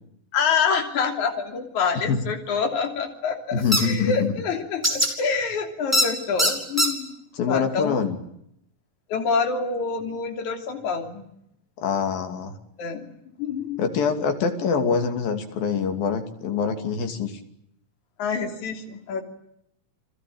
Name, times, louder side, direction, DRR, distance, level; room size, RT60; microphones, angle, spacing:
voice 1, 0.3-7.1 7.5-8.0 9.1-11.3 12.8-13.1 13.4-13.8 18.2-19.2, left 5 dB, 60° left, 4 dB, 4.3 m, -26 dB
voice 2, 3.5-4.3 7.3-8.2 11.8-12.5 13.8-17.4, left 6 dB, 85° left, 6 dB, 4.6 m, -24 dB
sound 1, 3.7-3.8 4.8-5.1 5.9-6.1 6.4-6.9, equal, 5° right, 4.5 m, -19 dB
30.0 x 21.0 x 8.9 m, 0.76 s
omnidirectional pair, 4.0 m